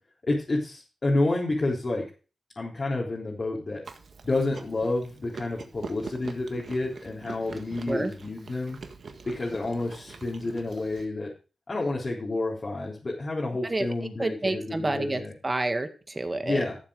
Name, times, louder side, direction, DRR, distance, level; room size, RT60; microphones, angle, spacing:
voice 1, 0.2-2.0 2.6-3.8 4.2-8.8 9.2-11.3 11.7-15.3 16.4-16.8, left 2 dB, 45° left, -4 dB, 3.6 m, -29 dB
Chewing mastication, 3.8-11.0, right 4 dB, 65° right, 1.6 m, -44 dB
voice 2, 14.2-16.6, right 2 dB, 30° right, 8 dB, 1.9 m, -29 dB
13.0 x 7.4 x 5.0 m, 0.36 s
cardioid pair, 50°, 0 cm